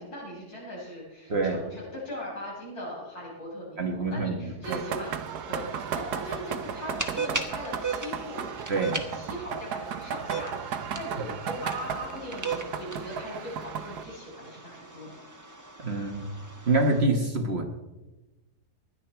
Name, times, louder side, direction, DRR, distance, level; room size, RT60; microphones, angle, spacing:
voice 1, 0.0-5.1 5.5-8.5 9.1-15.2, left 1 dB, 70° left, -5 dB, 6.4 m, -39 dB
voice 2, 3.8-4.8 8.7-9.0 11.2-11.3 15.8-16.3 16.7-17.6, right 2 dB, 45° right, 4 dB, 1.4 m, -26 dB
sound 1, 4.6-14.0, right 7 dB, 75° right, 1.4 m, -35 dB
sound 2, 5.1-17.0, right 4 dB, 15° right, 1.1 m, -39 dB
16.5 x 11.0 x 4.4 m, 1.1 s
omnidirectional pair, 1.7 m